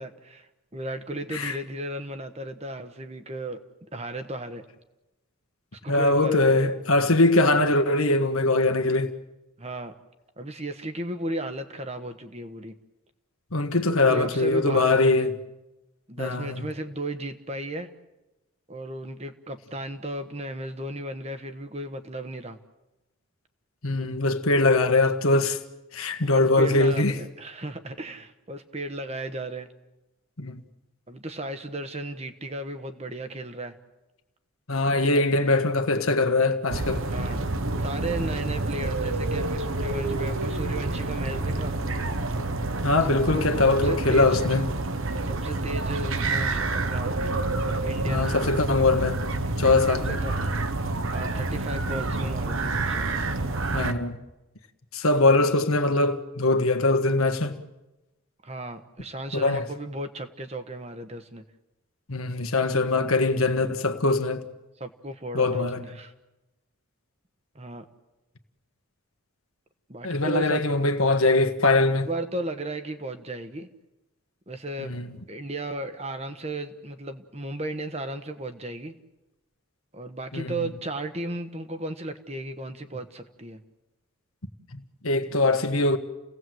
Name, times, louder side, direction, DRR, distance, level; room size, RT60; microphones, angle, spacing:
voice 1, 0.0-3.6 3.9-4.6 5.8-6.7 9.6-9.9 10.4-12.8 14.1-15.3 16.1-17.9 18.7-22.6 26.2-29.7 31.1-33.7 35.0-35.2 37.1-37.4 37.8-41.7 43.3-44.3 45.3-47.4 47.8-48.5 50.1-50.4 51.1-53.2 58.4-61.4 64.8-66.1 67.5-67.9 69.9-70.6 72.1-73.7 74.5-75.0 75.3-78.9 79.9-83.6, right 1 dB, 30° right, 1.3 m, -35 dB
voice 2, 5.9-9.1 13.5-15.3 16.2-16.6 23.8-25.6 25.9-27.2 30.4-30.6 34.7-37.1 42.8-44.7 48.0-49.2 49.6-50.2 53.7-54.2 54.9-57.6 59.3-59.7 62.1-64.4 65.3-65.8 70.0-72.1 74.8-75.2 80.3-80.7 84.7-86.0, left 2 dB, 75° left, 1.6 m, -22 dB
sound 1, 36.7-53.9, right 2 dB, 65° right, 1.3 m, -28 dB
29.5 x 17.5 x 7.9 m
head